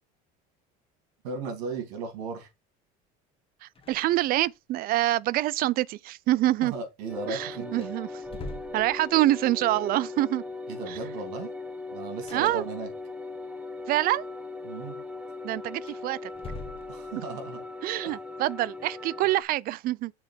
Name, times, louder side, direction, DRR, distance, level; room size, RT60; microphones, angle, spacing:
voice 1, 1.2-2.5 6.6-7.9 10.7-11.5 11.9-12.9 14.6-15.0 16.9-17.6 18.0-18.1, right 3 dB, 85° right, 3.2 m, -36 dB
voice 2, 3.6-6.7 7.3-8.1 8.7-10.4 10.9-11.0 12.3-12.6 13.9-14.2 15.4-16.2 17.8-20.1, right 16 dB, 50° right, 0.4 m, -26 dB
sound 1, 3.7-4.6 4.9-5.0 7.2-7.3 7.7-9.4 12.2-13.2 15.7-17.4, left 2 dB, 30° left, 1.2 m, -44 dB
sound 2, 7.1-19.4, left 3 dB, 5° right, 0.9 m, -39 dB
6.7 x 3.4 x 5.8 m
supercardioid pair, 110°, 20 cm